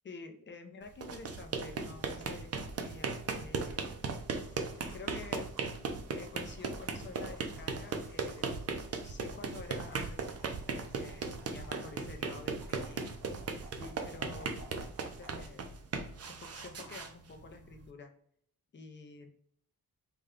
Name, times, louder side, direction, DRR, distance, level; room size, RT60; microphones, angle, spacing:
voice 1, 0.0-3.8 4.4-5.5 6.2-8.5 9.0-13.0 13.8-15.7 16.2-18.1 18.7-19.3, left 4 dB, 35° left, 4 dB, 0.5 m, -49 dB
sound 1, 0.9-17.9, right 4 dB, 45° right, 0.4 m, -38 dB
sound 2, 4.7-5.9 6.3-8.7 9.0-9.1 9.4-12.0 12.5-15.6 15.9-17.1, right 2 dB, 60° right, 0.8 m, -58 dB
3.4 x 2.2 x 3.5 m, 0.63 s
wide cardioid pair, 170°, 36 cm